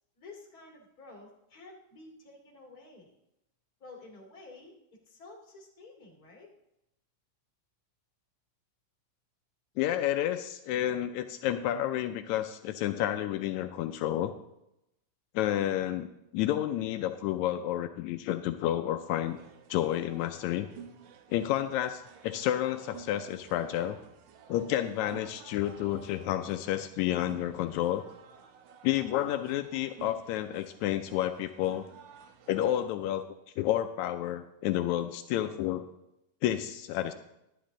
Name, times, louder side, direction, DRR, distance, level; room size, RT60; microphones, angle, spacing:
voice 1, 0.2-3.1 3.8-4.7 5.0-6.5, left 3 dB, 30° left, -1 dB, 2.5 m, -51 dB
voice 2, 9.8-14.3 15.3-19.4 19.7-20.7 21.3-24.0 24.5-28.0 28.8-31.9 32.5-33.2 33.6-35.8 36.4-37.1, left 12 dB, 90° left, 8 dB, 1.6 m, -30 dB
sound 1, 19.2-32.8, right 7 dB, 85° right, 2.6 m, -53 dB
11.5 x 10.0 x 3.7 m, 0.86 s
omnidirectional pair, 3.8 m